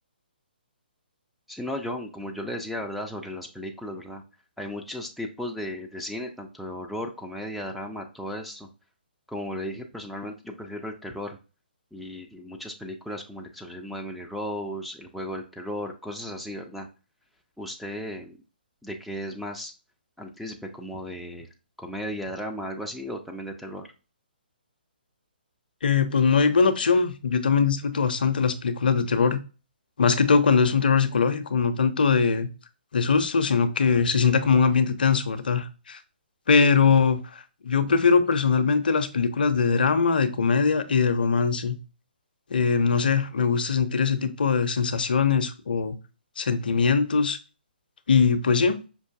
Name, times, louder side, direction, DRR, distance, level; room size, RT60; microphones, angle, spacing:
voice 1, 1.5-4.2 4.6-8.7 9.3-11.4 11.9-16.9 17.6-18.4 18.8-19.7 20.2-21.5 21.8-23.9, equal, ahead, 0 dB, 0.3 m, -35 dB
voice 2, 25.8-29.4 30.0-32.5 32.9-36.0 36.5-41.8 42.5-46.0 46.4-47.4 48.1-48.8, left 5 dB, 60° left, 10 dB, 0.5 m, -21 dB
5.3 x 2.5 x 2.3 m, 0.32 s
figure-of-eight pair, 135°, 6 cm